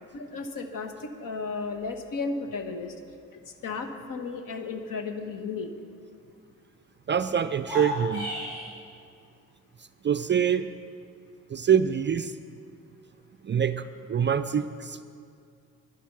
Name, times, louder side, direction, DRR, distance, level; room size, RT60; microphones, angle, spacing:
voice 1, 0.1-2.9 3.6-5.7, left 4 dB, 55° left, 6 dB, 1.3 m, -34 dB
voice 2, 7.1-8.3 10.0-10.7 11.5-12.4 13.4-15.0, right 8 dB, 30° right, 11 dB, 0.4 m, -25 dB
sound 1, 7.5-8.7, equal, 75° left, 3.7 m, -33 dB
11.5 x 10.5 x 6.9 m, 2.3 s
hypercardioid pair, 40°, 40 cm